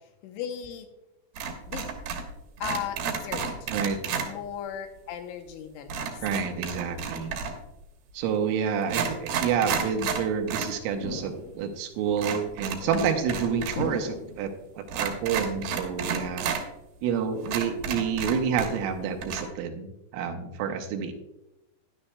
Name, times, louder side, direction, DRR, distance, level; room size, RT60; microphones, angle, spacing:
voice 1, 0.2-0.9 1.7-1.9 2.6-3.7 4.2-6.2 12.8-13.3, left 9 dB, 80° left, 5 dB, 3.1 m, -37 dB
sound 1, 1.4-2.3 2.6-4.3 5.9-7.7 8.3-8.4 8.8-10.7 11.1-11.2 12.2-13.8 14.1-14.2 14.9-16.6 17.1-17.2 17.4-18.9 19.2-19.4, right 6 dB, 70° right, 2.6 m, -31 dB
voice 2, 3.7-4.0 6.2-7.4 8.1-14.5 14.8-16.5 17.0-21.1, right 7 dB, 85° right, 5 dB, 3.3 m, -28 dB
sound 2, 11.0-11.9 12.7-13.2 13.8-14.6 15.1-15.7 16.0-16.8 17.1-17.5 17.9-18.5, left 2 dB, 65° left, 3.5 m, -40 dB
13.0 x 11.0 x 2.2 m, 0.94 s
omnidirectional pair, 5.7 m